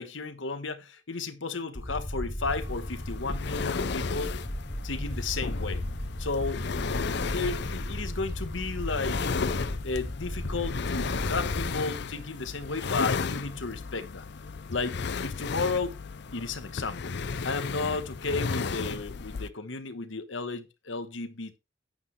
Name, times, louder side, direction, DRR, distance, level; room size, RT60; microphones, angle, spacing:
voice 1, 0.0-4.4 4.8-5.8 6.2-6.7 7.3-9.2 9.8-14.3 14.7-16.0 16.3-17.1 17.4-21.6, left 3 dB, 80° left, 1.3 m, -33 dB
sound 1, 1.7-11.7, equal, 15° left, 0.8 m, -35 dB
sound 2, 2.5-19.5, left 5 dB, 60° left, 0.6 m, -34 dB
9.3 x 9.3 x 3.2 m
head